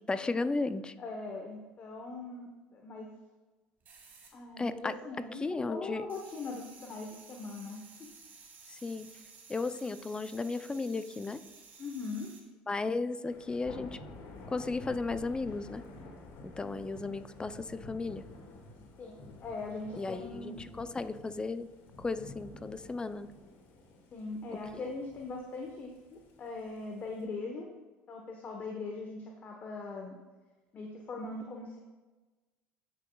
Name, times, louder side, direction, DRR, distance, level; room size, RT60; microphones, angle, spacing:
voice 1, 0.1-0.9 4.6-5.0 5.3-6.1 8.7-9.1 9.5-11.4 12.7-14.0 14.5-15.8 16.6-18.2 20.0-21.7 22.0-23.3 24.7-24.8, left 3 dB, 20° left, 13 dB, 0.5 m, -35 dB
voice 2, 1.0-3.1 4.3-8.1 11.8-12.3 19.0-20.6 24.1-25.9 26.4-27.7 28.1-30.2 30.7-31.8, left 3 dB, 40° left, 1 dB, 1.1 m, -41 dB
sound 1, 3.8-5.1 5.3-12.4, right 5 dB, 40° right, 2.0 m, -55 dB
Thunder / Rain, 13.2-27.2, left 2 dB, 60° left, 1.9 m, -50 dB
16.5 x 6.2 x 2.3 m, 1.2 s
hypercardioid pair, 80°, 5 cm